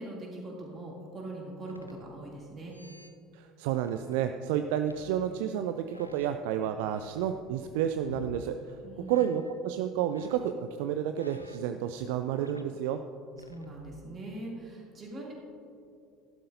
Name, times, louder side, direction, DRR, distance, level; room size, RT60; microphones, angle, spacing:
voice 1, 0.0-2.8 8.8-9.5 13.4-15.3, right 2 dB, 30° right, -3 dB, 2.7 m, -42 dB
sound 1, 1.7-2.4 2.7-3.1 3.8-4.2 4.9-5.6 5.9-8.5 9.1-9.6 10.1-12.7 13.3-14.0, left 1 dB, 90° left, 0.4 m, -49 dB
voice 2, 3.3-8.8 9.1-13.0, right 10 dB, 60° right, 8 dB, 0.3 m, -31 dB
13.5 x 11.5 x 2.7 m, 2.4 s
figure-of-eight pair, 65°, 0 cm